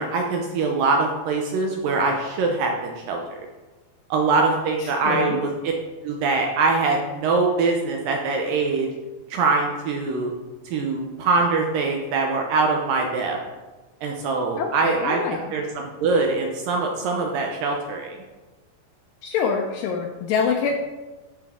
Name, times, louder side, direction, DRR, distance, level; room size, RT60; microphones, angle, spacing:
voice 1, 0.0-3.2 4.1-5.7 6.0-8.9 9.3-10.3 10.7-13.4 14.0-15.2 15.5-18.2, right 3 dB, 75° right, 1 dB, 2.1 m, -23 dB
voice 2, 4.8-5.4 14.6-15.5 19.2-20.8, left 6 dB, 90° left, 2 dB, 1.9 m, -25 dB
12.0 x 5.1 x 3.6 m, 1.2 s
omnidirectional pair, 4.7 m